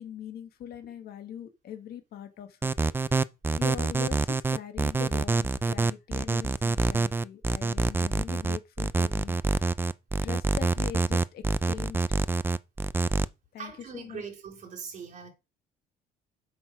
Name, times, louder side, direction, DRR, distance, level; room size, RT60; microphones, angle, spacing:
voice 1, 0.0-2.7 3.5-9.6 10.2-12.2 13.5-14.2, left 9 dB, 65° left, 1.8 m, -41 dB
sound 1, 2.6-13.3, right 3 dB, 15° right, 0.4 m, -26 dB
voice 2, 13.6-15.3, right 6 dB, 50° right, 4.3 m, -41 dB
7.8 x 6.1 x 4.9 m
cardioid pair, 110°, 17 cm